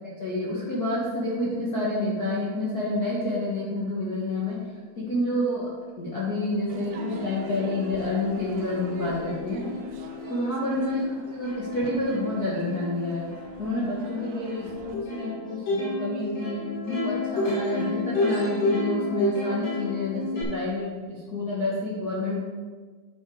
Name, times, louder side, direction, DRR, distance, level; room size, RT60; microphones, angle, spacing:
voice 1, 0.2-4.6 4.9-5.7 6.0-9.7 10.3-13.3 13.6-22.4, left 1 dB, 85° left, -7 dB, 0.8 m, -29 dB
Plucked string instrument, 6.6-6.7 6.9-20.4, left 2 dB, 60° left, 4.7 m, -31 dB
Crowd / Fireworks, 6.7-14.9, right 4 dB, 75° right, 2.2 m, -46 dB
10.0 x 6.2 x 4.8 m, 1.4 s
omnidirectional pair, 4.5 m